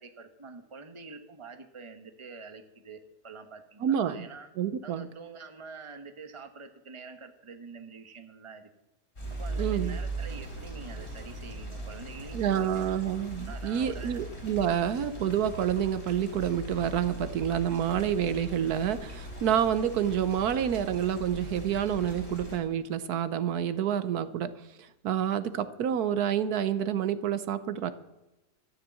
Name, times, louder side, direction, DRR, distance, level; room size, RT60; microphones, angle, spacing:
voice 1, 0.0-4.5 4.8-8.7 9.3-12.7 13.3-14.2, right 4 dB, 20° right, 7 dB, 1.1 m, -46 dB
voice 2, 3.8-4.3 4.6-5.1 9.6-10.0 12.3-24.5 25.0-27.9, right 9 dB, 75° right, 12 dB, 1.3 m, -28 dB
sound 1, 9.2-22.6, right 2 dB, 40° left, 3.9 m, -39 dB
13.5 x 9.8 x 7.6 m, 0.97 s
omnidirectional pair, 1.7 m